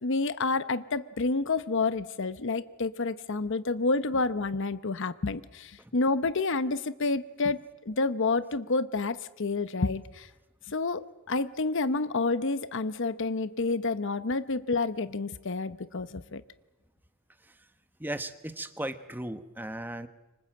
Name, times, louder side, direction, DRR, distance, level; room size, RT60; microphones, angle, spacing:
voice 1, 0.0-10.3 10.7-16.4, left 3 dB, 60° left, 14 dB, 0.9 m, -29 dB
voice 2, 18.0-20.1, right 1 dB, 10° right, 10 dB, 1.1 m, -36 dB
27.5 x 25.0 x 7.8 m, 1.1 s
head